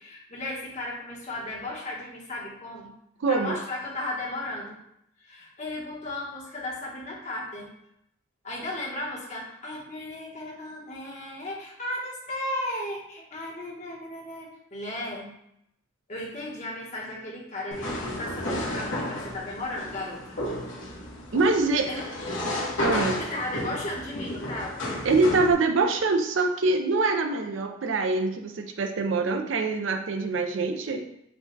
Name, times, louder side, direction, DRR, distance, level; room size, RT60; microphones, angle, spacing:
voice 1, 0.0-2.9 3.3-4.8 5.2-7.7 8.4-15.3 16.1-20.4 21.9-22.1 22.9-24.9, left 1 dB, 35° left, -3 dB, 1.1 m, -35 dB
voice 2, 3.2-3.6 21.3-21.9 22.8-23.2 25.0-31.1, right 3 dB, 75° right, 5 dB, 0.5 m, -24 dB
sound 1, 17.7-25.5, left 1 dB, 70° left, 1.3 m, -32 dB
4.9 x 2.3 x 3.8 m, 0.77 s
head